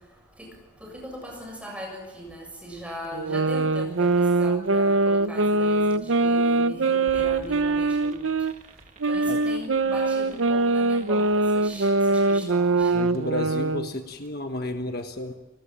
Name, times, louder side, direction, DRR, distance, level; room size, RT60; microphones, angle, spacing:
voice 1, 0.8-8.3 9.1-12.9, equal, 5° right, 1 dB, 7.2 m, -39 dB
sound 1, 3.1-8.5 9.0-13.9, right 3 dB, 70° right, 0.7 m, -23 dB
sound 2, 7.1-12.6, right 2 dB, 35° right, 1.8 m, -49 dB
voice 2, 12.9-15.3, left 1 dB, 45° left, 5 dB, 1.4 m, -32 dB
29.5 x 19.5 x 7.4 m, 1.1 s
head